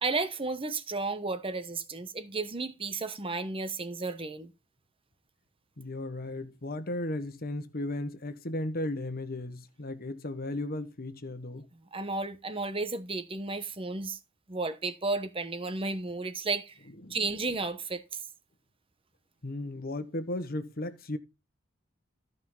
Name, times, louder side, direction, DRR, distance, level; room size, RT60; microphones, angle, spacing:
voice 1, 0.0-4.5 11.9-14.2 14.5-16.8 17.1-18.0, right 3 dB, 25° right, 1.0 m, -33 dB
voice 2, 5.8-11.7 17.0-17.2 19.4-21.2, left 1 dB, 50° left, 1.3 m, -35 dB
14.0 x 5.6 x 3.9 m
head